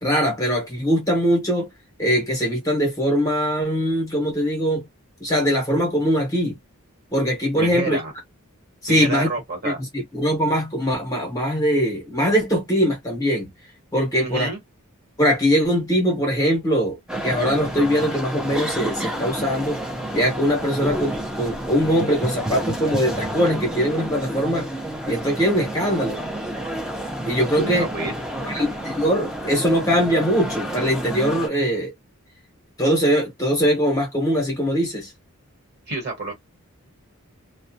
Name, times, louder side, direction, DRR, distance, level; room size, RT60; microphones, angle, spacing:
voice 1, 0.0-1.7 2.0-4.9 5.2-6.6 7.1-8.0 8.8-9.3 9.6-13.5 13.9-14.5 15.2-17.0 17.2-19.8 20.1-24.7 25.1-26.2 27.3-27.9 28.4-31.9 32.8-35.1, equal, 15° left, 0.9 m, -21 dB
voice 2, 7.6-8.1 8.9-9.8 14.1-14.6 27.6-28.1 35.9-36.3, right 2 dB, 45° right, 1.2 m, -28 dB
sound 1, 17.1-31.5, right 1 dB, 5° right, 0.5 m, -30 dB
2.2 x 2.1 x 2.7 m
head